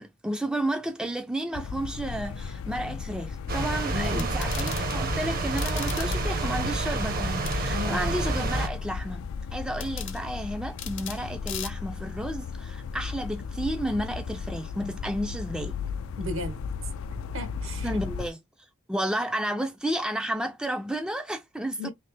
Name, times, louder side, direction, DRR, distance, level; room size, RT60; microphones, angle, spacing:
voice 1, 0.0-15.8 17.8-18.4 18.9-21.9, right 1 dB, 5° right, 0.3 m, -32 dB
sound 1, 1.5-18.3, left 5 dB, 90° left, 0.4 m, -35 dB
sound 2, 3.5-8.7, right 2 dB, 45° right, 0.7 m, -29 dB
voice 2, 3.9-4.3 7.7-8.0 16.2-16.7 17.3-18.0 21.8-21.9, left 1 dB, 75° right, 1.1 m, -34 dB
sound 3, 4.0-5.0 5.6-6.2 7.5-7.6 9.8-10.2 10.8-11.2 11.5-11.7, left 11 dB, 60° left, 0.7 m, -38 dB
3.2 x 2.8 x 3.2 m
head